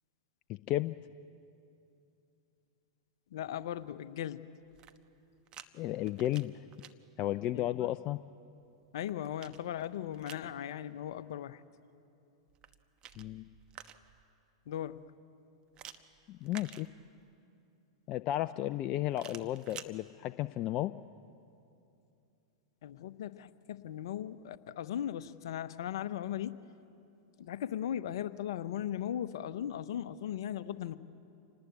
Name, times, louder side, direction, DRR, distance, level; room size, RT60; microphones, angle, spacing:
voice 1, 0.7-1.0 5.7-6.5 7.2-8.2 13.2-13.4 16.3-16.9 18.1-20.9, left 14 dB, 40° left, 12 dB, 0.5 m, -33 dB
voice 2, 3.3-4.4 7.5-7.9 8.9-11.6 14.7-15.0 22.8-26.6 27.4-31.0, left 10 dB, 65° left, 13 dB, 0.9 m, -38 dB
sound 1, 4.6-5.7 6.0-6.9 8.6-10.5 12.5-14.3 15.7-17.3 19.1-19.9, right 10 dB, 35° right, 1.1 m, -51 dB
27.5 x 19.5 x 8.3 m, 2.7 s
hypercardioid pair, 105°, 3 cm